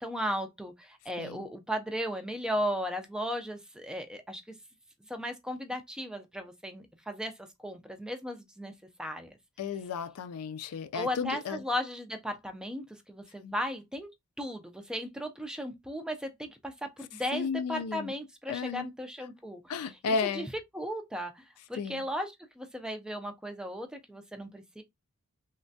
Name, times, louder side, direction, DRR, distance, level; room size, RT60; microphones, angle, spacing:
voice 1, 0.0-4.6 5.1-8.7 9.0-9.3 10.9-14.1 14.4-20.5 20.7-24.8, equal, 5° right, 0.3 m, -36 dB
voice 2, 9.6-11.6 13.4-13.5 17.3-18.1 18.5-18.9 19.7-20.5 21.8-22.0, left 5 dB, 80° left, 0.3 m, -33 dB
3.2 x 2.1 x 2.6 m
head